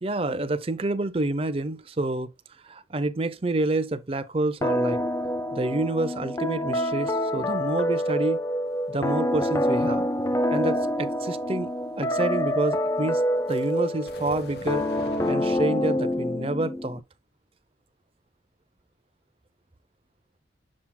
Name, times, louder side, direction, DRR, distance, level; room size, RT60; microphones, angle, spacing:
voice 1, 0.0-2.3 2.6-5.0 5.5-8.4 8.9-10.1 10.5-13.2 13.5-14.8 15.3-17.0, right 2 dB, 30° right, 0.6 m, -28 dB
sound 1, 4.6-17.0, equal, 15° left, 0.4 m, -26 dB
sound 2, 13.5-15.3, left 2 dB, 55° left, 0.8 m, -43 dB
7.4 x 5.8 x 2.2 m
head